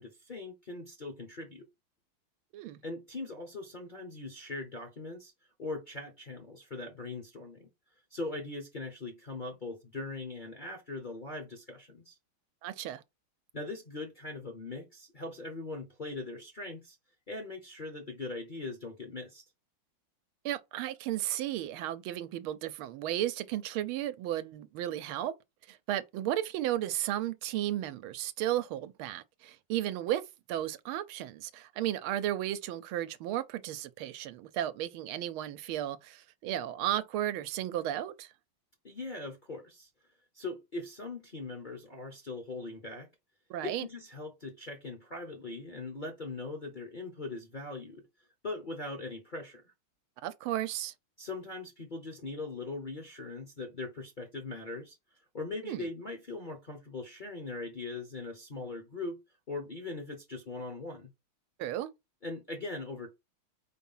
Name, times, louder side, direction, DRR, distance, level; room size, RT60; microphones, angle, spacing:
voice 1, 0.0-1.7 2.8-5.3 5.6-7.7 8.1-12.2 13.5-17.0 17.3-19.4 38.8-39.9 40.3-43.1 43.6-48.1 48.4-49.7 51.2-55.0 55.3-59.2 59.5-61.1 62.2-63.1, left 3 dB, 35° left, 0.8 m, -40 dB
voice 2, 12.6-13.0 20.4-25.3 25.7-30.2 30.5-38.3 43.5-43.9 50.2-50.9 55.7-55.8 61.6-61.9, right 12 dB, 80° right, 1.5 m, -34 dB
4.6 x 4.4 x 5.5 m
omnidirectional pair, 2.3 m